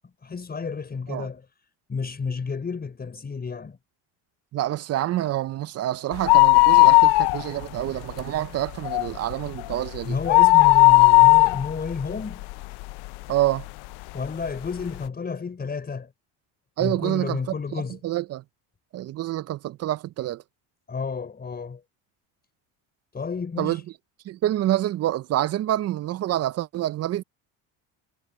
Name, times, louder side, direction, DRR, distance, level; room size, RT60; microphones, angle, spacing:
voice 1, 0.2-1.4 1.9-3.8 10.0-12.4 14.1-16.1 16.8-18.0 20.9-21.8 23.1-23.8, left 5 dB, 25° left, 4.9 m, -31 dB
voice 2, 4.5-10.2 13.3-13.7 16.8-18.4 18.9-20.4 23.6-23.8 24.3-27.2, right 14 dB, 40° right, 0.5 m, -27 dB
sound 1, 6.1-7.8 8.1-8.2 8.7-13.1 13.6-13.7 14.5-14.6 14.8-14.9, left 24 dB, 70° left, 0.6 m, -16 dB
cardioid pair, 125°, 40 cm